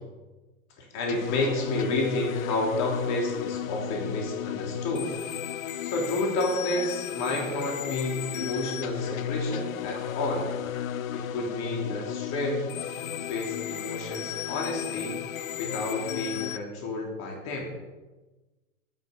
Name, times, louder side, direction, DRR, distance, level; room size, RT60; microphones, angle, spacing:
voice 1, 0.8-5.1 5.8-10.4 11.1-12.7 13.1-15.2 15.6-17.7, left 2 dB, 40° left, -1 dB, 3.4 m, -30 dB
sound 1, 1.1-16.6, left 9 dB, 75° left, 0.9 m, -34 dB
12.0 x 11.0 x 5.4 m, 1.2 s
hypercardioid pair, 120°, 41 cm